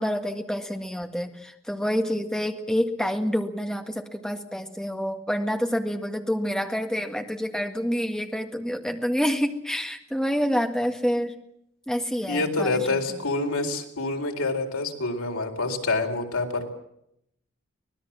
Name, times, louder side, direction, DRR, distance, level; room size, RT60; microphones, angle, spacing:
voice 1, 0.0-11.3 11.9-13.2, equal, 5° left, 4 dB, 1.8 m, -28 dB
voice 2, 12.3-16.7, left 3 dB, 85° left, 4 dB, 4.1 m, -27 dB
25.0 x 19.5 x 7.4 m, 0.76 s
head